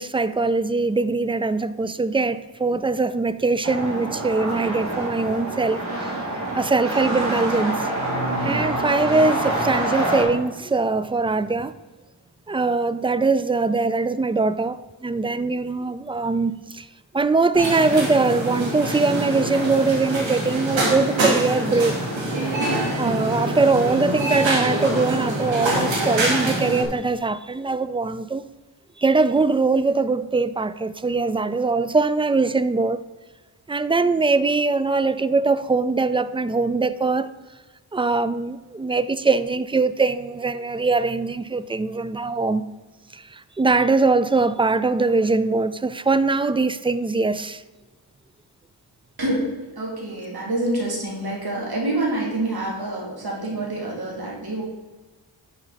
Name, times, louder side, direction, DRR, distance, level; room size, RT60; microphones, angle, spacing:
voice 1, 0.0-6.1 6.5-7.9 8.4-11.7 12.5-16.9 17.1-22.0 23.0-28.4 29.0-33.0 33.7-37.3 37.9-42.6 43.1-47.6, right 3 dB, 15° right, 0.3 m, -22 dB
sound 1, 3.6-10.2, right 1 dB, 40° right, 2.7 m, -26 dB
sound 2, 17.5-26.8, right 1 dB, 90° right, 2.3 m, -25 dB
voice 2, 49.8-54.6, right 1 dB, 55° right, 2.5 m, -27 dB
10.5 x 5.6 x 4.0 m
cardioid pair, 75°, 44 cm